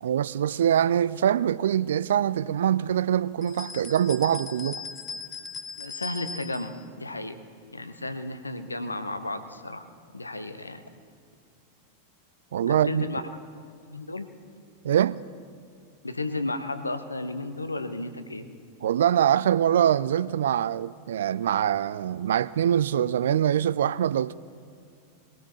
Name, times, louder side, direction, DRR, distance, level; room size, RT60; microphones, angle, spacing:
voice 1, 0.0-4.8 12.5-13.1 14.8-15.2 18.8-24.3, right 10 dB, 60° right, 0.3 m, -24 dB
sound 1, 3.4-6.7, left 5 dB, 15° left, 1.0 m, -39 dB
voice 2, 5.8-7.4 7.7-9.9 10.1-10.8 12.7-13.2 13.9-14.3 16.0-18.4, left 2 dB, 80° left, 0.9 m, -33 dB
21.5 x 17.5 x 3.1 m
figure-of-eight pair, 90°, 0 cm